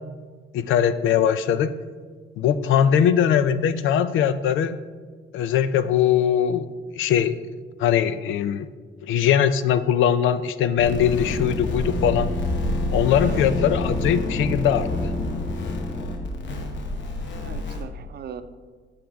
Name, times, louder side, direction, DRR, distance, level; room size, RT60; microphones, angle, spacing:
voice 1, 0.5-1.8 2.4-4.8 5.3-6.7 6.9-7.4 7.8-8.7 9.0-12.3 12.9-15.1, left 9 dB, 80° left, 13 dB, 0.5 m, -21 dB
voice 2, 2.7-3.1 13.2-13.5 17.4-18.4, right 8 dB, 55° right, 10 dB, 0.6 m, -39 dB
sound 1, 10.8-17.8, left 2 dB, 65° left, 1.0 m, -27 dB
9.9 x 6.4 x 3.5 m, 1.5 s
cardioid pair, 90°, 20 cm